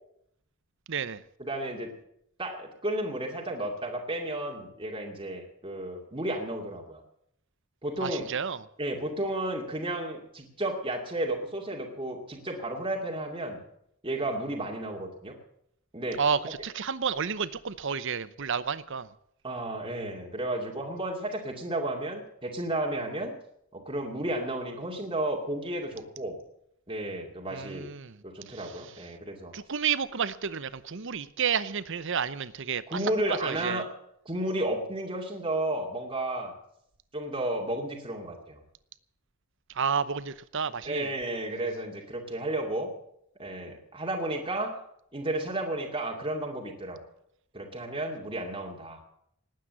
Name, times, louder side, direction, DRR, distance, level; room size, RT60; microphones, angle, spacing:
voice 1, 0.9-1.2 8.0-8.6 16.2-19.1 27.5-28.9 29.5-33.0 33.3-33.9 39.7-41.1, right 6 dB, 65° right, 0.8 m, -31 dB
voice 2, 1.4-1.9 2.4-7.0 7.8-8.3 8.8-13.6 14.0-15.3 15.9-16.2 19.4-23.3 23.7-26.4 26.9-27.9 28.2-29.5 32.9-33.9 34.3-36.5 37.1-38.6 40.8-42.9 43.4-44.8 45.1-47.0 47.5-49.0, right 1 dB, 25° right, 2.5 m, -32 dB
19.0 x 9.2 x 7.5 m
head